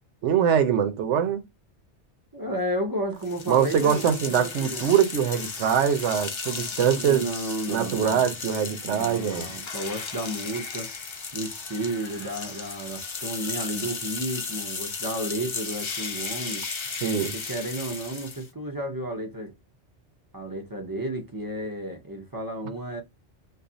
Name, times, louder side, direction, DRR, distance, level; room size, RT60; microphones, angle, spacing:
voice 1, 0.2-1.4 3.5-7.2 7.7-9.5 17.0-17.3, right 8 dB, 85° right, 0.9 m, -23 dB
voice 2, 2.3-4.9 7.0-8.4 8.8-10.9 11.3-16.6 17.3-19.5 20.3-23.0, right 1 dB, 30° right, 0.4 m, -32 dB
sound 1, 3.2-18.5, left 4 dB, 45° left, 0.3 m, -35 dB
2.4 x 2.3 x 3.8 m
omnidirectional pair, 1.2 m